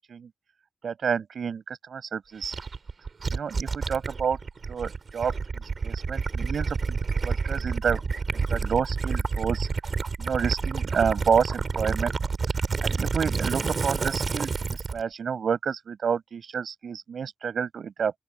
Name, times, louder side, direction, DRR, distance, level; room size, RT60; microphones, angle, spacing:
voice 1, 0.8-2.6 3.3-4.4 4.7-5.3 5.6-7.0 7.2-9.7 10.2-12.1 12.8-18.1, right 6 dB, 85° right, 5.8 m, -29 dB
Gurgling / Liquid, 2.4-15.0, right 4 dB, 55° right, 3.2 m, -29 dB
open air
wide cardioid pair, 125°, 0 cm